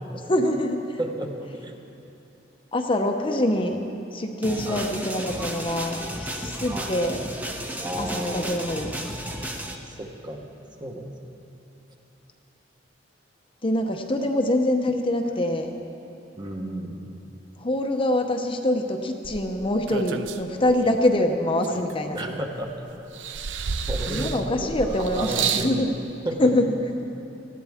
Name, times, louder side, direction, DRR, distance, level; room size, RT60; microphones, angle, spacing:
voice 1, 0.3-1.0 2.7-3.8 4.1-7.2 8.0-8.9 13.6-15.7 17.6-22.2 24.1-25.9 26.4-26.7, left 1 dB, 30° left, 3 dB, 0.8 m, -24 dB
voice 2, 1.0-1.7 4.6-4.9 6.7-7.0 7.8-8.6 9.8-10.5 10.8-11.4 16.4-17.1 22.1-22.7 23.7-24.7 25.1-25.8 26.2-26.5, right 1 dB, 25° right, 2 dB, 1.2 m, -33 dB
sound 1, 4.4-9.8, right 1 dB, 10° right, 0.8 m, -33 dB
sound 2, 19.2-21.1 21.6-22.7 23.1-25.8 26.7-26.8, right 6 dB, 85° right, 0.6 m, -31 dB
19.0 x 14.5 x 3.6 m, 3.0 s
head